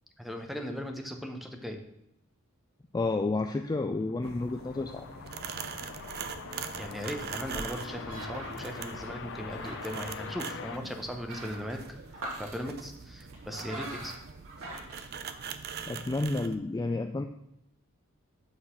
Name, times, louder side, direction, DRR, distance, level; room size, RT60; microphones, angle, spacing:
voice 1, 0.2-1.8 6.8-14.1, equal, ahead, 4 dB, 0.8 m, -38 dB
voice 2, 2.9-5.1 15.9-17.2, left 3 dB, 20° left, 5 dB, 0.3 m, -30 dB
sound 1, 3.6-11.9, left 5 dB, 55° left, 0.6 m, -44 dB
sound 2, 4.2-16.5, right 6 dB, 50° right, 0.5 m, -43 dB
sound 3, 5.8-15.9, right 1 dB, 75° right, 1.9 m, -46 dB
8.3 x 3.9 x 6.5 m, 0.79 s
head